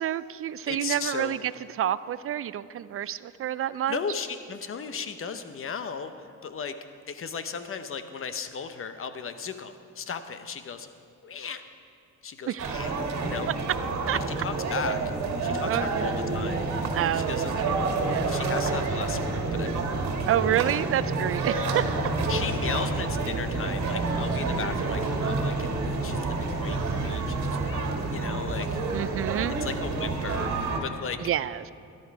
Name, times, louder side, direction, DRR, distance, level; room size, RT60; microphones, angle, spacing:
voice 1, 0.0-1.4 1.8-4.0 12.5-12.8 14.1-14.4 15.7-16.1 16.9-18.3 20.3-22.1 28.9-29.5 31.2-31.7, right 11 dB, 45° right, 16 dB, 0.5 m, -29 dB
voice 2, 0.7-1.4 3.9-6.7 7.1-10.9 11.2-11.6 12.2-12.9 13.2-13.5 14.4-15.0 15.4-17.6 18.3-20.1 22.3-28.8 29.6-31.2, left 6 dB, 45° left, 10 dB, 0.9 m, -36 dB
sound 1, 12.6-30.8, right 3 dB, 65° right, 1.9 m, -28 dB
13.5 x 11.5 x 4.8 m, 2.6 s
cardioid pair, 90°, 30 cm